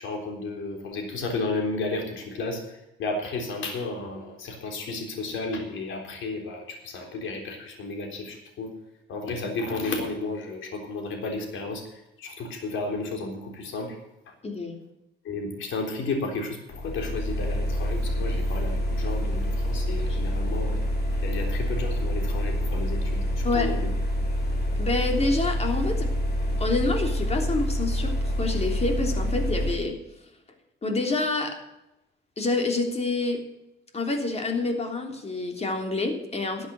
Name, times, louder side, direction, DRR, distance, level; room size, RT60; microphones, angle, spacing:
voice 1, 0.0-8.8 9.1-14.0 15.2-20.8 21.2-23.9, left 3 dB, 80° left, 3 dB, 3.8 m, -33 dB
voice 2, 14.4-14.7 23.4-23.7 24.8-26.1 26.6-30.0 30.8-31.6 32.4-33.4 33.9-36.7, left 3 dB, 30° left, 3 dB, 3.3 m, -27 dB
sound 1, 16.7-29.7, equal, 55° left, 3.5 m, -27 dB
13.0 x 8.1 x 7.7 m, 0.89 s
cardioid pair, 90°, 20 cm